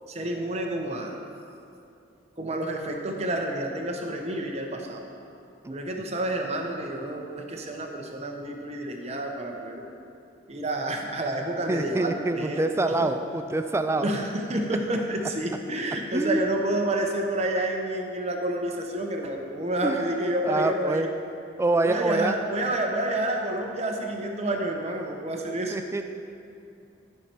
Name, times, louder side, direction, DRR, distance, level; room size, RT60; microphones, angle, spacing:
voice 1, 0.1-1.2 2.4-5.0 5.7-9.8 10.5-13.1 14.0-21.1 21.8-25.8, right 1 dB, 35° right, 2 dB, 0.9 m, -29 dB
voice 2, 5.6-6.0 11.7-14.1 16.1-16.4 19.8-20.0 20.4-21.1 21.6-22.4 25.7-26.0, right 2 dB, 15° right, 7 dB, 0.3 m, -26 dB
12.5 x 5.8 x 4.4 m, 2.7 s
head